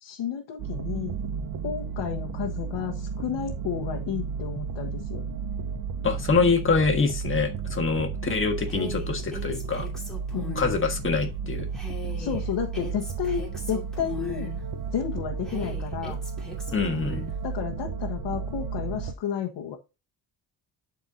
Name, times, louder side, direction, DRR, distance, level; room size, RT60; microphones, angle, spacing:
voice 1, 0.0-1.1 1.6-5.3 10.3-10.7 12.2-14.5 14.9-16.2 17.4-19.8, left 8 dB, 85° left, 1 dB, 1.3 m, -32 dB
sound 1, 0.6-19.1, right 5 dB, 55° right, 0.7 m, -33 dB
voice 2, 6.0-9.9 10.5-11.7 16.7-17.2, left 4 dB, 30° left, 4 dB, 1.6 m, -25 dB
Female speech woman speaking, 8.7-10.8 11.7-14.6 15.4-17.3, left 1 dB, ahead, 2.5 m, -40 dB
11.5 x 4.6 x 2.7 m, 0.27 s
cardioid pair, 160°, 42 cm